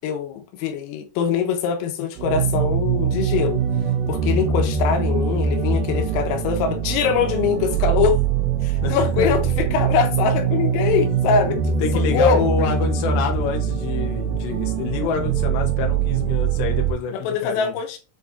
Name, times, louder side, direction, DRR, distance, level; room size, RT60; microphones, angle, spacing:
voice 1, 0.0-3.6 4.1-8.2 8.6-12.4 17.1-18.0, left 6 dB, 90° left, 3.7 m, -23 dB
sound 1, 2.2-16.9, right 6 dB, 70° right, 2.4 m, -22 dB
voice 2, 8.8-9.3 11.8-17.7, left 6 dB, 70° left, 3.0 m, -27 dB
8.1 x 4.7 x 2.7 m
omnidirectional pair, 5.9 m